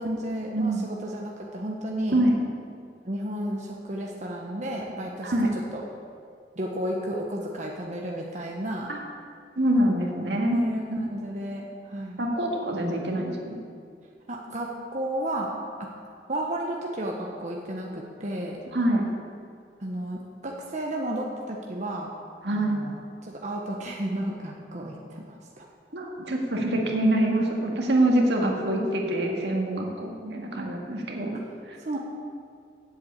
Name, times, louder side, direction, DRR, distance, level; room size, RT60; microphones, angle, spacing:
voice 1, 0.0-2.2 3.0-5.3 5.7-5.8 6.6-8.9 10.5-12.2 14.3-15.5 15.8-16.0 16.3-18.6 19.8-22.1 22.5-25.7 31.3-31.4 31.8-32.0, right 1 dB, 45° right, -1 dB, 1.0 m, -33 dB
voice 2, 9.6-10.6 10.9-11.0 12.2-13.6 18.7-19.0 22.4-22.8 25.9-31.4, right 1 dB, 80° right, 0 dB, 1.9 m, -25 dB
8.0 x 7.8 x 8.4 m, 2.3 s
head